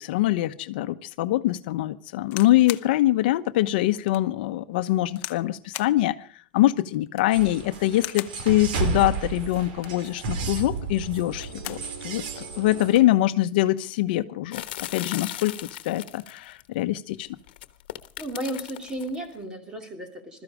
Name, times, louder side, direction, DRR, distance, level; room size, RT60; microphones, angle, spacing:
voice 1, 0.0-6.1 6.5-14.6 14.9-15.6 15.8-17.3, left 15 dB, 70° left, 11 dB, 1.0 m, -24 dB
sound 1, 2.2-2.9 3.5-3.6 4.1-4.2 5.2-5.5 5.7-6.0 7.0-7.4 7.9-8.4 9.6-10.1 11.2-11.9 12.3-12.4 12.6-13.1 14.0-14.2, left 18 dB, 40° left, 0.8 m, -38 dB
sound 2, 7.3-13.0, right 5 dB, 75° right, 3.3 m, -32 dB
sound 3, 14.5-16.6 17.5-19.2, left 14 dB, 85° left, 1.2 m, -37 dB
voice 2, 18.2-20.4, right 1 dB, 15° right, 6 dB, 2.9 m, -34 dB
21.0 x 13.5 x 4.9 m, 0.43 s
supercardioid pair, 165°, 5 cm